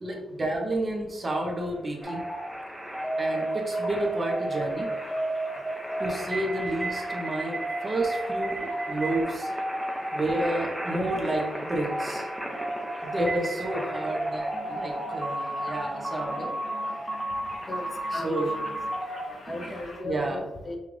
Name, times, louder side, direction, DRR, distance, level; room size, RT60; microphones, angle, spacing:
voice 1, 0.0-2.2 3.2-4.9 6.0-9.5 10.1-12.3 13.0-16.5 18.1-18.6 19.5-19.7 20.0-20.4, right 1 dB, 35° right, 0 dB, 0.9 m, -30 dB
sound 1, 1.1-20.0, left 2 dB, 75° left, 1.5 m, -47 dB
sound 2, 2.0-19.3, right 1 dB, ahead, 0.7 m, -32 dB
voice 2, 17.7-18.7 19.2-20.8, left 1 dB, 35° left, 2 dB, 0.7 m, -37 dB
5.5 x 2.4 x 3.2 m, 1.0 s
cardioid pair, 90°, 0 cm